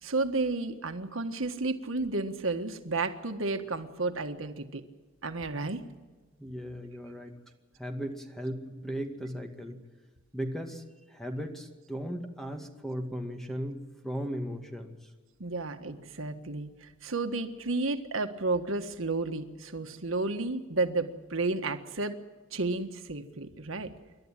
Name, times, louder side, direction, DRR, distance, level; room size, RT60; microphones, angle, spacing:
voice 1, 0.0-4.8 5.2-5.8 15.4-22.2 22.5-23.9, right 3 dB, 85° right, 7 dB, 1.5 m, -32 dB
voice 2, 6.4-7.4 7.8-9.8 10.3-15.0, equal, ahead, 4 dB, 2.2 m, -37 dB
27.5 x 12.0 x 9.0 m, 1.3 s
head